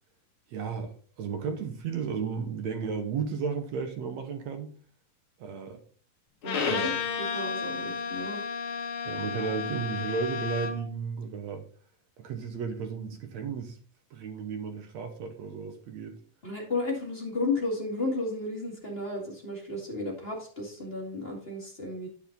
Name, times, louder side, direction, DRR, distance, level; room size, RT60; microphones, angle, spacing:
voice 1, 0.5-4.7 5.4-5.8 6.6-6.9 9.1-11.7 12.2-13.8 14.1-16.2, right 6 dB, 65° right, 2.1 m, -34 dB
Bowed string instrument, 6.4-10.9, left 5 dB, 55° left, 1.5 m, -32 dB
voice 2, 6.4-8.4 16.4-22.1, left 2 dB, 20° left, 1.8 m, -33 dB
9.2 x 7.3 x 3.9 m
omnidirectional pair, 3.7 m